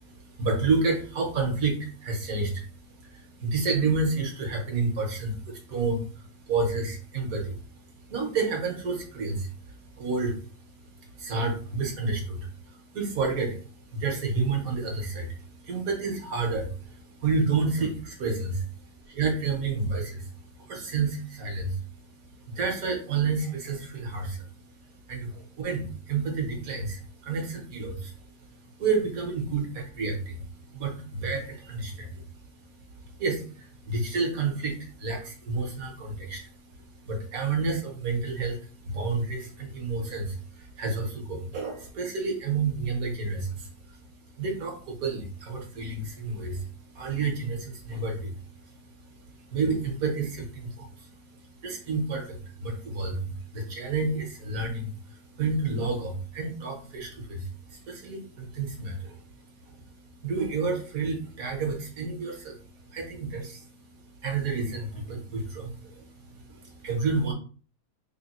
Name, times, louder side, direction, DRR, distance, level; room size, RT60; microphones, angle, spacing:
voice 1, 0.3-67.3, right 4 dB, 60° right, 1 dB, 1.5 m, -31 dB
3.8 x 2.2 x 4.2 m, 0.40 s
omnidirectional pair, 1.7 m